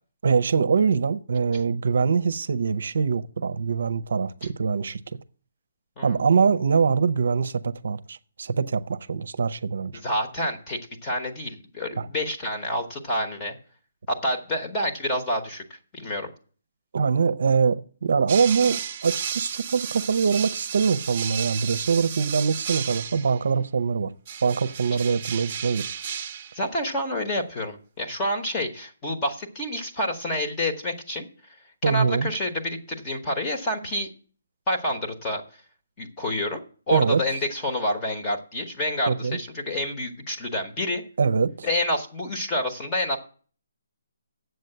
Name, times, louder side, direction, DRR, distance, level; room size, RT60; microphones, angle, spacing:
voice 1, 0.2-5.0 6.0-9.9 12.0-12.1 16.9-24.1 24.4-26.0 31.8-32.3 36.9-37.2 39.1-39.4 41.2-41.7, right 5 dB, 60° right, 0.6 m, -23 dB
voice 2, 10.0-13.5 14.2-16.3 24.9-25.0 26.5-31.2 31.8-34.1 34.7-35.4 36.0-36.6 36.9-41.0 41.6-43.2, left 1 dB, 15° left, 1.1 m, -28 dB
sound 1, 18.3-23.4 24.3-26.6, right 8 dB, 25° right, 0.7 m, -33 dB
7.8 x 6.6 x 7.9 m
hypercardioid pair, 170°, 0 cm